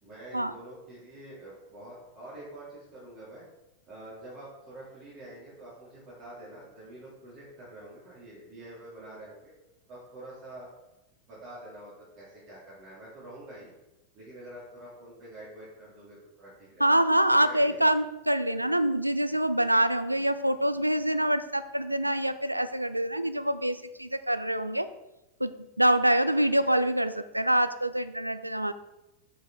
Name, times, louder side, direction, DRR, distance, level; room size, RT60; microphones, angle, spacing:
voice 1, 0.0-3.4 3.9-9.5 9.9-10.7 11.3-13.7 14.1-17.0 17.4-18.0 26.4-26.7, right 1 dB, 40° right, -9 dB, 3.1 m, -46 dB
voice 2, 16.8-24.9 25.4-28.7, right 1 dB, 85° right, 13 dB, 0.4 m, -25 dB
7.7 x 5.8 x 3.9 m, 0.95 s
figure-of-eight pair, 90°, 0 cm